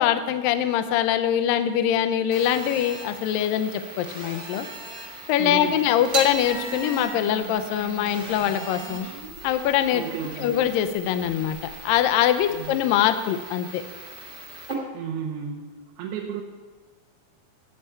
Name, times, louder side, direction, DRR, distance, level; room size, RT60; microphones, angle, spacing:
voice 1, 0.0-4.7 5.3-9.1 9.4-10.0 10.4-11.6 11.8-13.8, left 10 dB, 80° left, 9 dB, 2.2 m, -23 dB
Telephone, 2.3-14.7, right 2 dB, 35° right, 1.1 m, -41 dB
voice 2, 5.4-5.8 9.9-10.6 12.5-12.8 14.9-16.4, right 8 dB, 80° right, 0 dB, 2.8 m, -33 dB
sound 1, 6.1-12.7, right 3 dB, 60° right, 1.3 m, -36 dB
14.5 x 8.6 x 4.4 m, 1.3 s
omnidirectional pair, 4.5 m